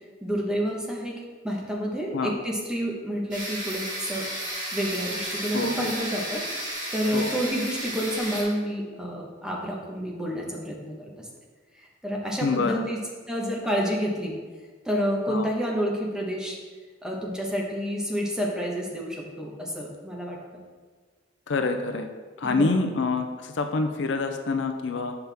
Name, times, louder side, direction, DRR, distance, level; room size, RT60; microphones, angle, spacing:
voice 1, 0.2-1.1 1.4-4.2 4.7-11.3 11.8-13.0 13.3-14.4 14.8-16.6 17.0-20.6 22.4-22.8, equal, 5° right, -2 dB, 1.1 m, -29 dB
sound 1, 3.3-8.4, right 1 dB, 45° right, 2.3 m, -33 dB
voice 2, 5.5-5.9 7.1-7.4 12.4-12.9 15.3-15.5 21.5-22.1 22.4-25.2, left 3 dB, 65° left, 6 dB, 0.5 m, -26 dB
8.0 x 5.8 x 3.5 m, 1.5 s
head